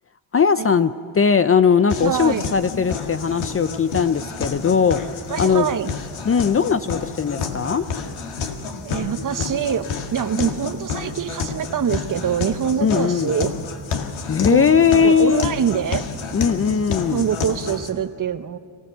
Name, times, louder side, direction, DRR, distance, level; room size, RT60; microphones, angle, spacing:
voice 1, 0.3-5.7 6.3-7.8 12.8-13.3 14.3-15.5 16.3-17.3, left 6 dB, 30° left, 12 dB, 0.5 m, -19 dB
sound 1, 1.9-17.9, left 5 dB, 75° left, 1.9 m, -29 dB
voice 2, 2.0-2.6 5.3-5.9 8.8-13.5 14.5-14.6 15.0-16.1 17.1-18.6, right 8 dB, 40° right, 12 dB, 0.9 m, -24 dB
24.5 x 15.5 x 6.8 m, 2.2 s
cardioid pair, 90°, 48 cm